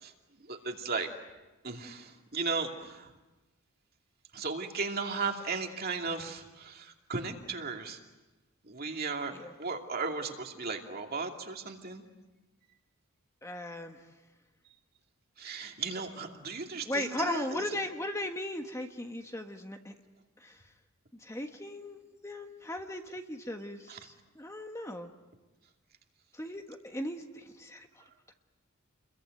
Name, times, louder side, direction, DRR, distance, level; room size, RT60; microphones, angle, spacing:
voice 1, 0.4-1.1 1.6-3.1 4.3-8.0 8.6-9.3 9.6-12.0 15.4-17.6 23.9-24.0, right 4 dB, 45° right, 3 dB, 2.6 m, -36 dB
voice 2, 13.4-14.0 16.8-19.9 20.4-20.6 21.2-25.1 26.3-27.9 28.3-28.4, left 1 dB, 15° left, 5 dB, 1.3 m, -38 dB
29.5 x 22.5 x 9.1 m, 1.1 s
head